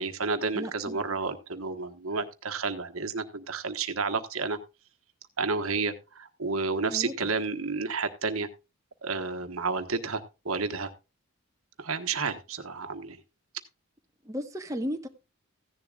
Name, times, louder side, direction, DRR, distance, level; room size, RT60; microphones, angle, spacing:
voice 1, 0.0-4.6 5.4-8.5 9.0-10.9 11.8-13.2, right 4 dB, 75° right, 1.3 m, -31 dB
voice 2, 0.5-1.0 6.9-7.3 14.2-15.1, equal, 15° right, 1.1 m, -35 dB
15.5 x 10.5 x 2.4 m
head